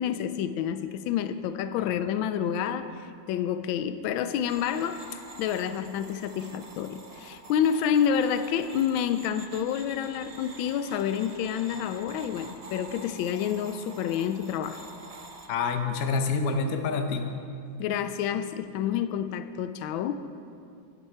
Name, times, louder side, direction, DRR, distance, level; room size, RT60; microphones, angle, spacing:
voice 1, 0.0-2.9 3.3-5.0 5.4-14.8 17.8-20.2, left 8 dB, 90° left, 11 dB, 1.3 m, -28 dB
sound 1, 4.5-15.5, right 2 dB, 50° right, 0.4 m, -47 dB
voice 2, 15.5-17.3, left 4 dB, 55° left, 6 dB, 1.2 m, -27 dB
17.0 x 7.8 x 4.5 m, 2.5 s
omnidirectional pair, 2.1 m